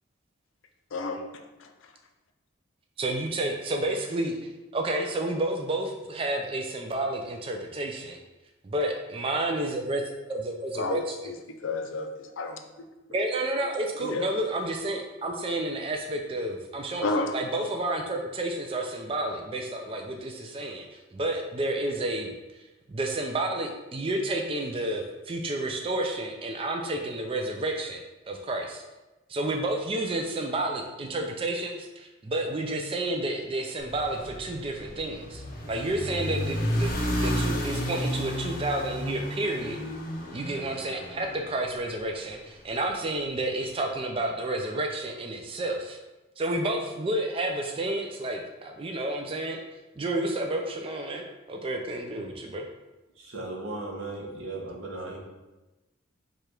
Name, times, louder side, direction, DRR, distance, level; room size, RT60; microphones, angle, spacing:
voice 1, 0.9-1.7 10.7-12.6 14.0-14.2 17.0-17.3, left 3 dB, 65° left, 5 dB, 0.5 m, -31 dB
voice 2, 3.0-4.4 4.7-8.2 8.6-11.2 13.1-17.0 17.3-22.3 22.5-22.6 22.9-28.8 29.3-35.4 35.7-39.8 40.3-46.0 46.4-49.6 50.0-52.6, right 1 dB, 25° right, 2 dB, 0.4 m, -30 dB
sound 1, 33.8-42.2, equal, 40° left, 0.8 m, -32 dB
voice 3, 53.1-55.2, right 2 dB, 70° right, -1 dB, 0.9 m, -36 dB
4.9 x 2.4 x 4.4 m, 1.1 s
head